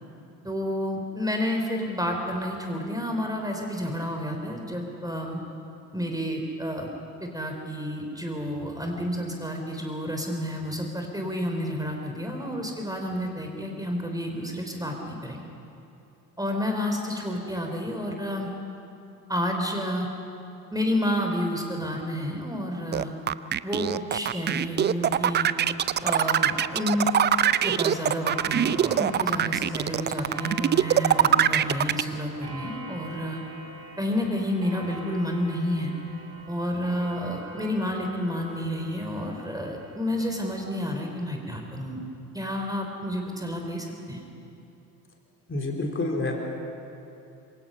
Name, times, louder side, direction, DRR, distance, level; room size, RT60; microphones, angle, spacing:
voice 1, 0.4-5.4 5.9-6.9 7.2-15.4 16.4-18.5 19.3-20.1 20.7-23.1 23.6-25.5 26.0-27.1 27.6-33.4 34.0-35.9 36.5-42.0 42.3-44.2, left 1 dB, 5° right, 2 dB, 3.7 m, -30 dB
sound 1, 22.9-32.0, right 10 dB, 20° right, 0.5 m, -22 dB
Clock, 25.1-41.2, right 2 dB, 40° right, 6.7 m, -43 dB
voice 2, 45.5-46.4, left 2 dB, 25° left, 0 dB, 3.8 m, -28 dB
26.0 x 23.5 x 5.6 m, 2.8 s
figure-of-eight pair, 55°, 49 cm